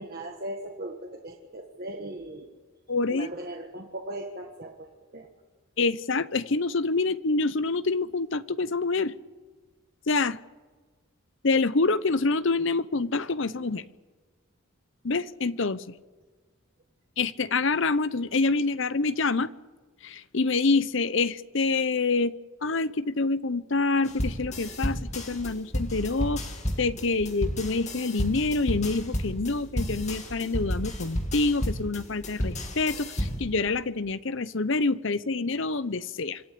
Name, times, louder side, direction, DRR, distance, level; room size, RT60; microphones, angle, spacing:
voice 1, 0.0-2.5 3.1-4.9 5.1-5.3, right 1 dB, 45° right, 2 dB, 1.6 m, -38 dB
voice 2, 2.9-3.3 5.8-9.1 10.1-10.4 11.4-13.8 15.0-16.0 17.2-19.5 20.0-22.3 22.6-26.4 26.8-36.4, left 3 dB, 60° left, 15 dB, 0.8 m, -26 dB
sound 1, 24.1-33.5, equal, 30° left, 2.5 m, -32 dB
26.0 x 14.0 x 8.5 m, 1.4 s
head